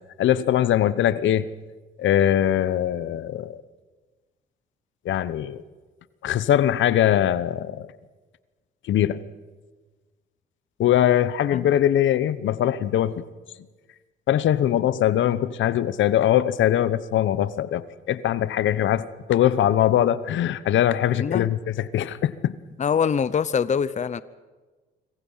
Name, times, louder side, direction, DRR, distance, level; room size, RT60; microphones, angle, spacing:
voice 1, 0.2-1.5 2.0-3.6 5.0-5.6 6.2-7.9 8.9-9.2 10.8-13.2 14.3-22.5, left 11 dB, 75° left, 16 dB, 1.0 m, -22 dB
voice 2, 21.2-21.5 22.8-24.2, left 7 dB, 35° left, 16 dB, 0.8 m, -24 dB
26.0 x 25.0 x 5.7 m, 1.3 s
cardioid pair, 90°, 20 cm